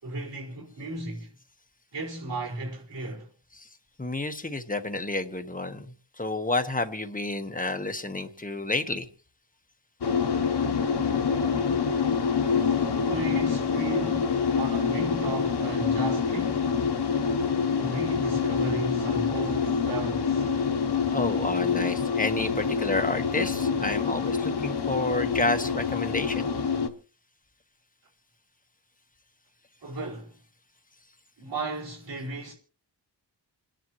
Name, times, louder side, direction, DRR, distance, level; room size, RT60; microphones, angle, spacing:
voice 1, 0.0-1.3 1.9-3.3 12.6-16.8 17.7-20.5 29.8-30.4 31.4-32.5, right 2 dB, 75° right, 4.9 m, -35 dB
voice 2, 4.0-5.9 6.2-9.1 21.1-26.5, left 2 dB, 20° left, 1.2 m, -30 dB
sound 1, 10.0-26.9, left 6 dB, 65° left, 1.1 m, -26 dB
28.0 x 10.5 x 3.1 m
wide cardioid pair, 105°, 43 cm